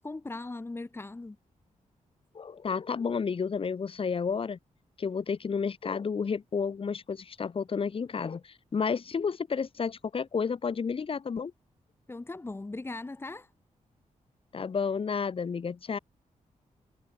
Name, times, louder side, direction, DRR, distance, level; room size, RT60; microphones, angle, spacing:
voice 1, 0.0-1.4 12.1-13.5, left 2 dB, 15° left, 3.4 m, -39 dB
voice 2, 2.3-4.6 5.0-11.5 14.5-16.0, left 5 dB, 45° left, 6.4 m, -31 dB
wide cardioid pair, 165°, 13 cm